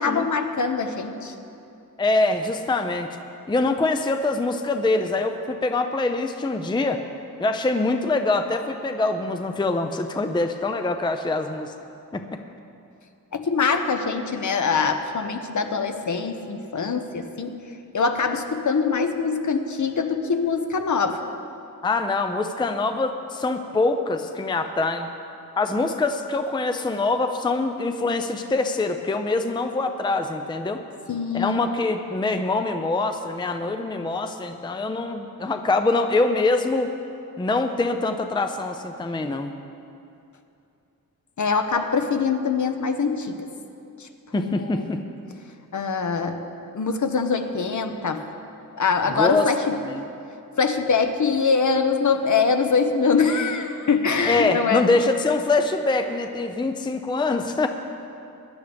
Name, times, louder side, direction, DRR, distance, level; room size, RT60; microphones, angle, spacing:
voice 1, 0.0-1.3 13.3-17.5 17.9-21.2 31.1-31.6 41.4-43.4 44.0-44.1 44.3-44.9 45.7-46.4 46.7-48.3 48.7-49.8 50.6-54.9, left 5 dB, 60° left, 6 dB, 0.9 m, -23 dB
voice 2, 2.0-3.1 3.5-7.0 7.4-11.7 12.1-12.4 21.8-25.1 25.6-30.8 31.3-36.9 37.4-39.5 44.3-45.0 49.1-49.4 49.8-50.1 54.3-57.7, left 3 dB, 15° left, 6 dB, 0.5 m, -24 dB
21.5 x 11.0 x 3.5 m, 2.7 s
wide cardioid pair, 165°, 34 cm